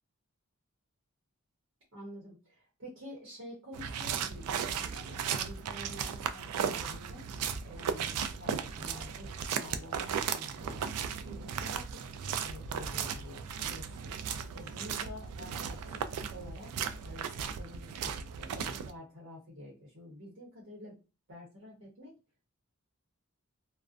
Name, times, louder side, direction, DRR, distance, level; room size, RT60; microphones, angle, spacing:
voice 1, 1.9-7.2 7.6-10.9 11.2-12.2 12.4-14.1 14.5-16.7 17.0-20.9 21.3-22.1, left 1 dB, 55° right, -3 dB, 0.8 m, -48 dB
sound 1, 3.7-18.9, right 7 dB, 90° right, 0.3 m, -36 dB
2.4 x 2.1 x 2.4 m, 0.31 s
head